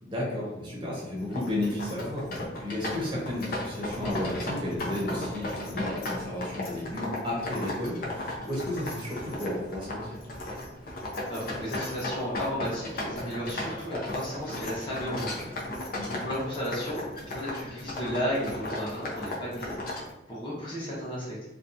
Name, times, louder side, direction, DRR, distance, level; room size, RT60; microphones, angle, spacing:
voice 1, 0.0-10.1 15.9-16.2, left 1 dB, 25° right, -4 dB, 0.8 m, -33 dB
sound 1, 1.2-20.1, left 1 dB, 50° left, 0.6 m, -36 dB
voice 2, 11.3-15.6 16.2-20.0 20.3-21.4, equal, 25° left, -6 dB, 0.9 m, -34 dB
2.7 x 2.2 x 2.5 m, 0.95 s
head